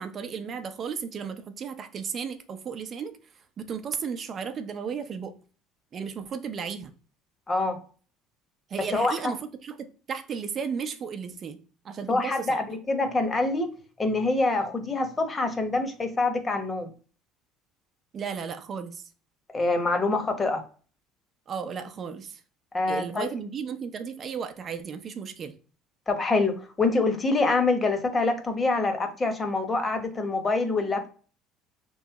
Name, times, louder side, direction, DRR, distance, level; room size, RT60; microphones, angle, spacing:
voice 1, 0.0-3.1 3.6-5.3 5.9-6.9 8.7-11.6 11.8-12.6 18.1-19.0 21.5-22.4 22.9-25.5, right 6 dB, 45° right, 0.6 m, -34 dB
voice 2, 7.5-7.8 8.9-9.1 12.1-13.7 14.0-16.9 19.5-20.6 22.7-23.3 26.1-31.1, left 3 dB, 25° left, 1.0 m, -25 dB
3.1 x 2.7 x 3.6 m
supercardioid pair, 80°, 0 cm